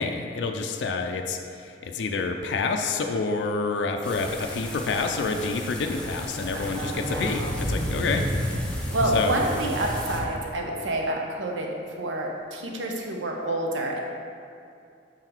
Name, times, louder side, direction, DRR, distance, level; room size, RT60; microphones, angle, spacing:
voice 1, 0.0-8.3 9.1-9.4, left 4 dB, 65° left, 4 dB, 0.4 m, -28 dB
sound 1, 4.0-10.2, equal, 5° left, 0.6 m, -31 dB
voice 2, 6.5-7.5 8.9-14.0, right 1 dB, 85° right, 0 dB, 0.7 m, -28 dB
6.2 x 3.9 x 4.4 m, 2.5 s
head